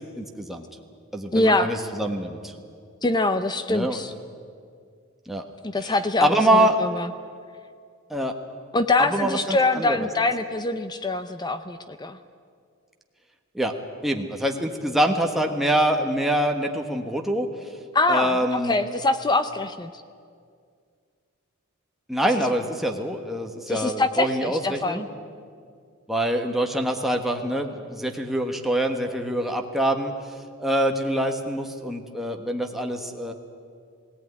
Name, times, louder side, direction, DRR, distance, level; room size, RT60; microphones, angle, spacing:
voice 1, 0.2-0.7 1.1-2.5 3.7-4.0 5.3-5.4 5.8-5.9 6.2-6.8 8.1-8.3 9.0-10.1 13.5-13.7 14.0-17.5 18.1-18.8 22.1-25.1 26.1-30.1 30.6-33.3, right 1 dB, ahead, 2 dB, 1.3 m, -25 dB
voice 2, 1.3-1.7 3.0-4.1 5.6-7.1 8.7-12.2 17.9-19.9 23.7-25.0, left 2 dB, 20° left, 10 dB, 0.6 m, -24 dB
18.5 x 18.0 x 9.5 m, 2.2 s
head